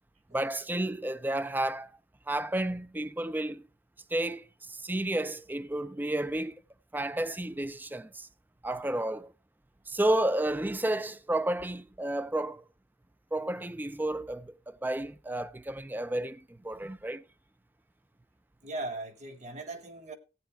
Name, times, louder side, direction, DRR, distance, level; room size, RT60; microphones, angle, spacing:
voice 1, 0.3-1.9 2.3-3.6 4.1-6.6 6.9-8.3 8.6-9.3 9.9-12.6 13.3-17.2, right 1 dB, 10° right, 0.5 m, -31 dB
voice 2, 18.6-20.2, right 2 dB, 40° right, 1.4 m, -39 dB
15.0 x 9.1 x 3.4 m
head